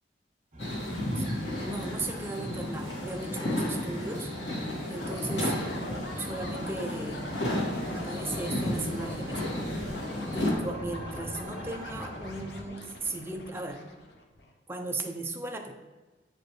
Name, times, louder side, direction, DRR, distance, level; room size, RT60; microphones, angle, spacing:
sound 1, 0.5-12.6, right 1 dB, 45° right, 1.1 m, -45 dB
sound 2, 0.6-10.5, left 1 dB, 80° left, 1.8 m, -33 dB
voice 1, 1.1-4.3 4.9-5.5 6.1-7.3 7.9-9.4 10.3-13.9 14.7-15.7, right 2 dB, 15° right, 4 dB, 0.5 m, -36 dB
sound 3, 5.0-14.5, left 1 dB, 65° left, 0.8 m, -42 dB
7.4 x 5.1 x 3.1 m, 1.2 s
head